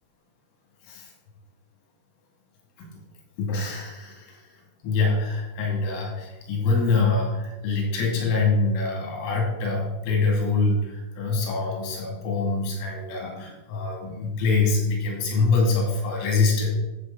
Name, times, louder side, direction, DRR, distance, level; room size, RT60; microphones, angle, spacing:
voice 1, 3.4-4.5 4.8-16.7, left 3 dB, 90° left, -1 dB, 5.0 m, -24 dB
13.0 x 8.0 x 3.9 m, 1.1 s
omnidirectional pair, 5.8 m